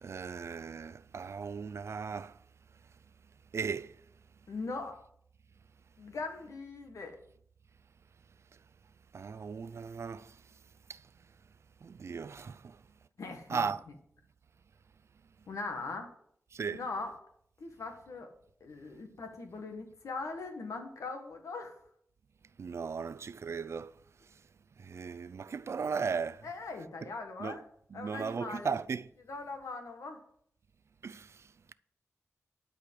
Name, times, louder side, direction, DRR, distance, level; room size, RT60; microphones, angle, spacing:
voice 1, 0.0-2.4 3.5-3.9 9.1-10.4 10.9-11.0 11.8-12.8 13.5-13.8 16.5-16.8 22.6-23.9 24.8-26.5 27.0-27.1 27.4-27.6 27.9-29.1 31.0-31.5, right 5 dB, 60° right, 0.5 m, -37 dB
voice 2, 4.5-4.9 6.0-7.2 13.2-13.7 15.5-16.1 16.7-17.1 17.6-18.3 18.6-21.8 26.4-27.6 27.9-28.8 29.3-30.2, left 3 dB, 80° left, 1.7 m, -40 dB
12.0 x 5.0 x 7.6 m
wide cardioid pair, 95°, 5 cm